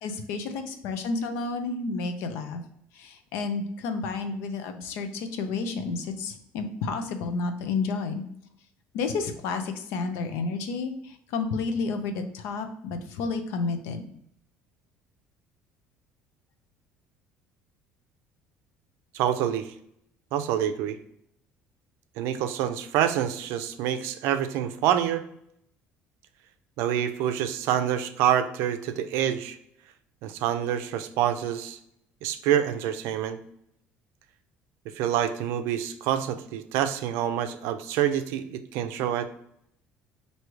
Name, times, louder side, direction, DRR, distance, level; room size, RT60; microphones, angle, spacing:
voice 1, 0.0-2.6 3.0-8.2 8.9-10.9 11.3-14.0, left 4 dB, 75° left, 7 dB, 0.6 m, -31 dB
voice 2, 19.1-19.7 20.3-21.0 22.2-25.2 26.8-29.6 30.2-31.8 32.2-33.4 35.0-39.3, right 10 dB, 75° right, 10 dB, 0.4 m, -27 dB
4.7 x 2.7 x 3.0 m, 0.73 s
cardioid pair, 160°, 4 cm